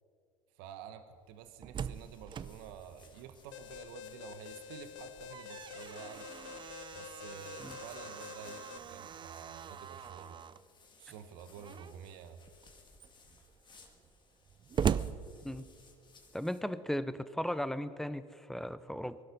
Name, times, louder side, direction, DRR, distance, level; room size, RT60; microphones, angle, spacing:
voice 1, 0.5-6.3 6.9-10.4 11.0-12.4, right 8 dB, 65° right, 10 dB, 1.1 m, -50 dB
Slam, 1.3-4.1 4.5-4.6 5.0-10.7 11.6-12.1 12.6-12.7 13.0-16.1, right 8 dB, 30° right, 0.5 m, -40 dB
sound 1, 1.9-16.6, left 4 dB, 30° left, 2.2 m, -62 dB
Alarm, 3.5-8.8, left 10 dB, 75° left, 0.6 m, -48 dB
voice 2, 16.3-19.2, equal, ahead, 14 dB, 0.7 m, -36 dB
20.0 x 12.0 x 5.3 m, 2.3 s
hypercardioid pair, 70°, 16 cm